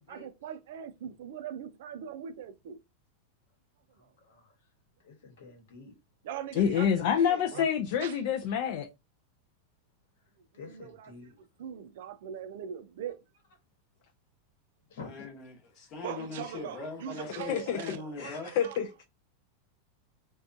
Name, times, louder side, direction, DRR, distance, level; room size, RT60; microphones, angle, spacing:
voice 1, 0.0-2.8 6.2-7.7 8.0-8.2 10.7-11.1 11.6-13.2 16.0-18.8, right 9 dB, 60° right, 0.3 m, -41 dB
voice 2, 4.0-4.6 5.0-5.9 7.5-7.7 10.5-11.4 14.9-15.3, left 4 dB, 75° left, 1.0 m, -48 dB
voice 3, 6.6-8.9 17.4-19.0, left 8 dB, 45° left, 0.3 m, -28 dB
voice 4, 15.0-18.5, left 3 dB, 30° left, 0.8 m, -41 dB
2.6 x 2.2 x 2.5 m
supercardioid pair, 175°, 0 cm